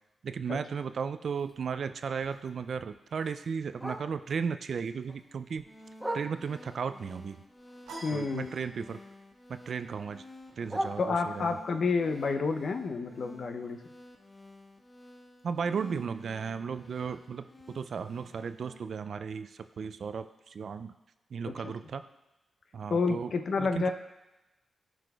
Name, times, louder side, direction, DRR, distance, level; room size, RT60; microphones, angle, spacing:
voice 1, 0.2-5.7 6.1-7.4 8.1-9.0 9.5-10.2 10.6-11.5 15.4-20.9 21.3-22.0 22.7-23.3 23.6-23.9, right 6 dB, 65° right, 11 dB, 0.3 m, -35 dB
Bark, 1.3-4.5 4.9-6.8 7.2-9.1 9.3-11.6 12.1-16.0 16.3-16.4 16.7-17.1 17.6-17.7 18.0-18.1 18.6-18.7, right 1 dB, 5° right, 1.2 m, -43 dB
sound 1, 5.6-18.8, left 1 dB, 25° left, 1.4 m, -53 dB
sound 2, 7.9-9.2, right 2 dB, 85° right, 2.0 m, -46 dB
voice 2, 8.0-8.5 11.0-13.8 21.5-21.7 22.9-23.9, left 4 dB, 65° left, 6 dB, 0.6 m, -30 dB
12.0 x 4.8 x 2.3 m, 0.98 s
supercardioid pair, 40°, 0 cm